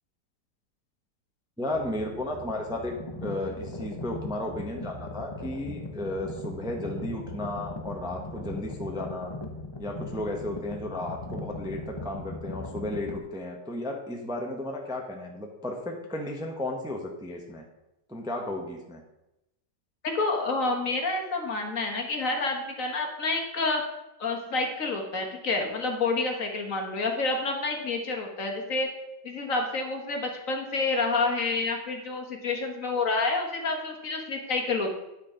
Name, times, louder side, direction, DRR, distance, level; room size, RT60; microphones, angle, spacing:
voice 1, 1.6-9.3 9.8-17.6 18.1-19.0, left 1 dB, 5° right, 1 dB, 0.9 m, -34 dB
sound 1, 1.7-13.2, left 2 dB, 25° left, 0.6 m, -39 dB
voice 2, 20.1-23.8 24.2-28.9 29.2-35.0, left 3 dB, 50° left, 2 dB, 1.7 m, -28 dB
9.6 x 6.7 x 5.1 m, 0.93 s
omnidirectional pair, 1.8 m